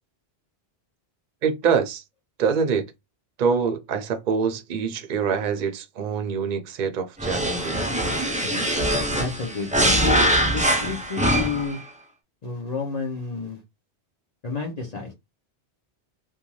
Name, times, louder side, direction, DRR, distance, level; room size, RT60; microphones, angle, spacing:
voice 1, 1.4-2.0 2.4-2.8 3.4-7.9, right 6 dB, 55° right, 0.6 m, -25 dB
sound 1, 7.2-11.8, equal, 10° right, 0.4 m, -22 dB
voice 2, 9.1-10.0 10.5-11.8 12.4-13.6 14.4-15.1, left 4 dB, 45° left, 0.7 m, -31 dB
2.5 x 2.3 x 3.0 m
omnidirectional pair, 1.1 m